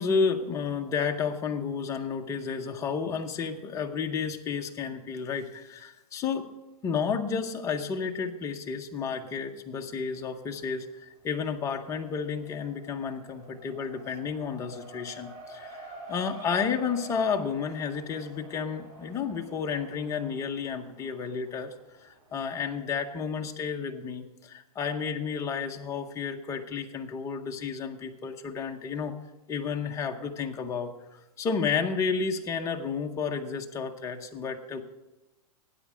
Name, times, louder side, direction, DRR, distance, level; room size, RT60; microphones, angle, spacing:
voice 1, 0.0-6.5 6.8-21.7 22.0-29.1 29.5-34.8, left 6 dB, 15° left, 3 dB, 0.7 m, -31 dB
Race car auto racing, 10.1-10.8 11.1-22.5, right 2 dB, 60° right, 4.1 m, -49 dB
13.0 x 9.3 x 4.9 m, 1.0 s
hypercardioid pair, 155°, 20 cm